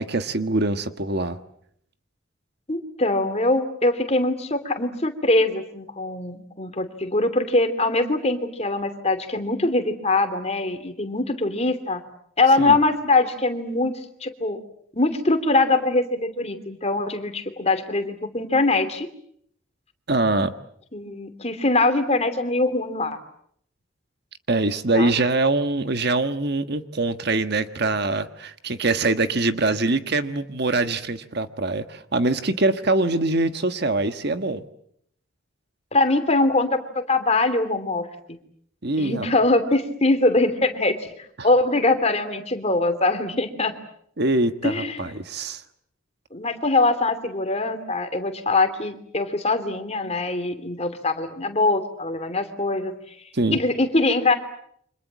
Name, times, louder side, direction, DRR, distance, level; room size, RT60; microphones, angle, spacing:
voice 1, 0.0-1.4 12.6-12.8 20.1-20.5 24.5-34.6 38.8-39.3 41.4-41.5 44.2-45.6 53.3-53.6, right 2 dB, 50° right, 10 dB, 1.4 m, -23 dB
voice 2, 2.7-12.0 12.4-13.9 14.2-14.6 15.0-19.1 20.9-23.2 24.9-25.1 35.9-38.1 39.0-41.1 41.4-43.7 44.6-45.1 46.3-53.1 53.5-54.3, left 2 dB, 30° left, 9 dB, 2.9 m, -22 dB
29.5 x 26.0 x 7.5 m, 0.68 s
head